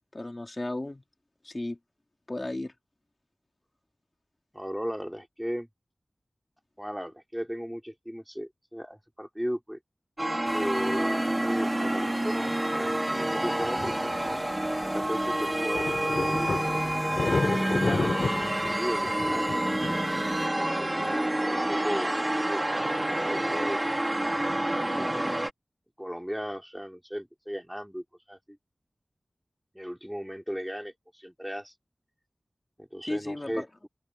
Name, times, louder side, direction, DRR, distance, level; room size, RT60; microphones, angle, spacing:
voice 1, 0.1-1.0 1.4-1.8 2.3-2.7 33.0-33.7, left 2 dB, 30° left, 4.1 m, -34 dB
voice 2, 4.5-5.7 6.8-9.8 10.5-14.1 14.8-16.8 17.3-18.2 18.4-19.5 20.4-22.1 22.4-22.9 23.2-23.8 25.0-25.2 26.0-28.6 29.7-31.7 32.8-33.9, equal, 5° right, 4.1 m, -36 dB
sound 1, 10.2-25.5, right 1 dB, 20° right, 1.2 m, -28 dB
sound 2, 10.5-20.4, left 3 dB, 75° left, 4.0 m, -34 dB
open air
wide cardioid pair, 65°, 0 cm